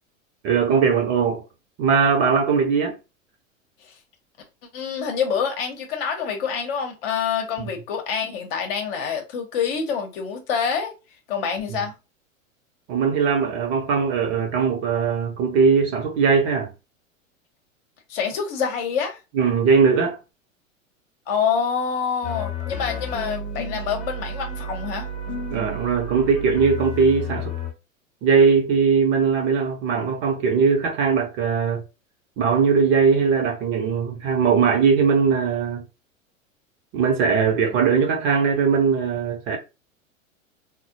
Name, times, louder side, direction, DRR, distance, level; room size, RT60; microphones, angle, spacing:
voice 1, 0.4-1.4 1.8-3.0 12.9-16.7 19.3-20.2 25.5-27.5 28.2-31.8 32.4-35.8 36.9-39.6, right 5 dB, 30° right, 0.8 m, -20 dB
voice 2, 4.7-10.9 11.3-11.9 18.1-19.2 21.3-25.1, left 6 dB, 45° left, 0.9 m, -26 dB
sound 1, 22.2-27.7, left 1 dB, 20° left, 0.7 m, -31 dB
4.1 x 2.2 x 2.7 m
figure-of-eight pair, 90°, 40 cm